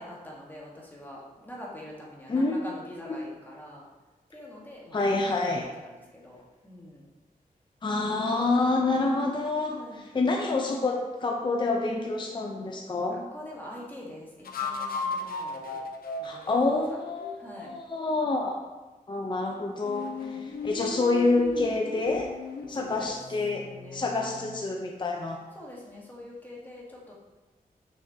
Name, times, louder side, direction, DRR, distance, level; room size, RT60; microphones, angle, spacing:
voice 1, 0.0-3.9 4.3-5.0 5.4-7.1 9.7-10.0 13.1-15.8 16.2-16.6 17.4-17.7 20.2-20.4 22.7-23.1 23.5-24.4 25.5-27.1, left 1 dB, 10° left, -4 dB, 1.3 m, -45 dB
voice 2, 2.3-2.6 4.9-5.7 7.8-13.3 16.2-18.5 19.1-22.3 22.7-23.7 23.9-25.4, left 3 dB, 30° left, 1 dB, 0.5 m, -27 dB
sound 1, 12.1-12.3 14.4-17.8 19.8-24.7, left 4 dB, 80° left, 0.6 m, -37 dB
6.0 x 5.7 x 2.7 m, 1.2 s
wide cardioid pair, 130°, 15 cm